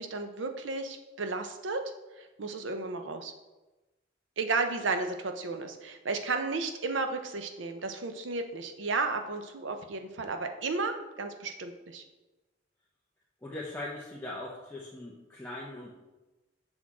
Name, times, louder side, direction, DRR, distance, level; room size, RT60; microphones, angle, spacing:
voice 1, 0.0-1.8 2.2-3.3 4.4-12.0, right 3 dB, 90° right, 6 dB, 0.7 m, -33 dB
voice 2, 13.4-15.9, left 2 dB, 10° left, -4 dB, 0.8 m, -40 dB
6.2 x 6.2 x 3.7 m, 1.1 s
head